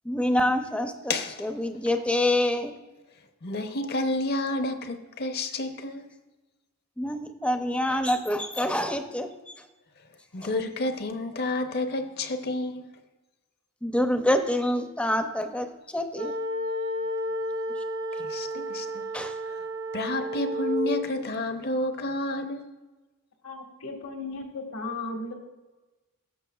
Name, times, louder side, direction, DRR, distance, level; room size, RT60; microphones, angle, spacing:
voice 1, 0.0-2.7 7.0-9.6 10.4-10.5 13.8-16.3 19.1-19.4, left 1 dB, 5° left, 0.5 m, -26 dB
voice 2, 1.1-1.5 3.4-6.1 10.3-12.9 18.2-19.0 19.5-19.6 19.9-22.7, left 2 dB, 50° left, 0.7 m, -30 dB
sound 1, 16.1-21.1, equal, 60° right, 0.7 m, -31 dB
voice 3, 23.4-25.3, left 3 dB, 80° left, 1.5 m, -36 dB
13.5 x 6.7 x 2.3 m
head